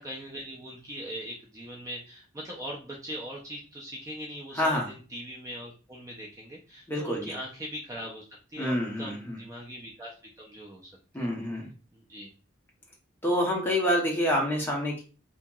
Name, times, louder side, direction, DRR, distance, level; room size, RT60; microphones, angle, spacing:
voice 1, 0.0-8.2 8.5-10.9 11.2-11.3 11.9-12.3, equal, 15° right, -2 dB, 0.4 m, -41 dB
voice 2, 4.5-4.9 6.9-7.4 8.6-9.4 11.1-11.7 13.2-15.0, equal, 10° left, -1 dB, 0.7 m, -27 dB
2.8 x 2.7 x 2.2 m, 0.35 s
head